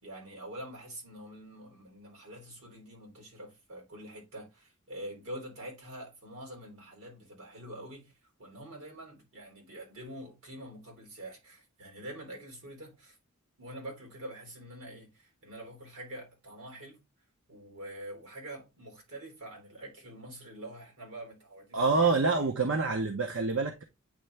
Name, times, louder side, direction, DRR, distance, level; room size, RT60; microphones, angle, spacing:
voice 1, 0.0-8.1 8.4-13.2 13.6-17.0 17.5-22.2, right 1 dB, 80° right, 3.6 m, -45 dB
voice 2, 21.7-23.8, right 4 dB, 65° right, 0.8 m, -27 dB
9.1 x 3.3 x 3.3 m
head